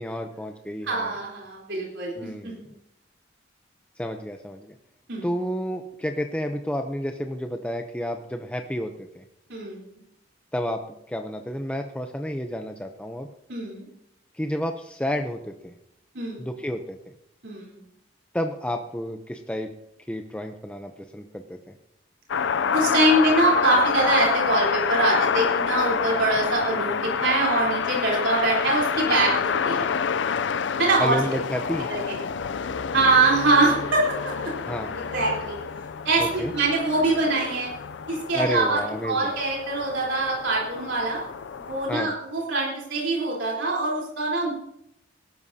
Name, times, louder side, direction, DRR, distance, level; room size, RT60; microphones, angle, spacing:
voice 1, 0.0-1.1 2.1-2.6 4.0-4.7 5.2-9.2 10.5-13.3 14.3-15.7 16.4-17.0 18.3-19.7 20.1-21.7 31.0-31.9 34.7-34.9 36.2-36.5 38.3-39.3 41.9-42.1, equal, 5° left, 5 dB, 0.6 m, -30 dB
voice 2, 0.9-2.7 5.1-5.3 9.5-10.0 13.5-13.9 16.1-16.5 17.4-17.8 22.7-29.9 30.8-31.2 31.9-32.2 32.9-34.0 35.1-35.6 36.1-37.7 38.1-41.2 41.6-44.5, right 2 dB, 75° right, -4 dB, 3.7 m, -23 dB
sound 1, 22.3-42.0, left 6 dB, 75° left, 0.5 m, -28 dB
18.5 x 12.5 x 2.8 m, 0.78 s
head